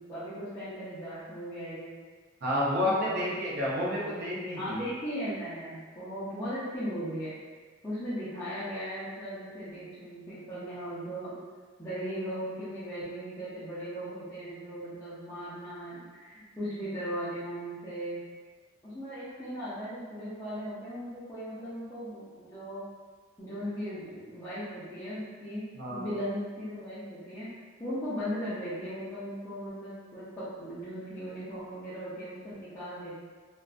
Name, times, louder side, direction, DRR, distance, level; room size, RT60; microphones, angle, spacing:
voice 1, 0.0-1.9 2.7-3.3 4.0-4.1 4.5-7.3 7.8-11.3 11.8-18.2 18.8-22.8 23.4-25.6 25.9-27.5 27.8-33.2, equal, 15° left, -14 dB, 0.5 m, -37 dB
voice 2, 2.4-4.8 25.8-26.1, left 1 dB, 55° right, -6 dB, 0.6 m, -30 dB
2.5 x 2.1 x 2.3 m, 1.5 s
head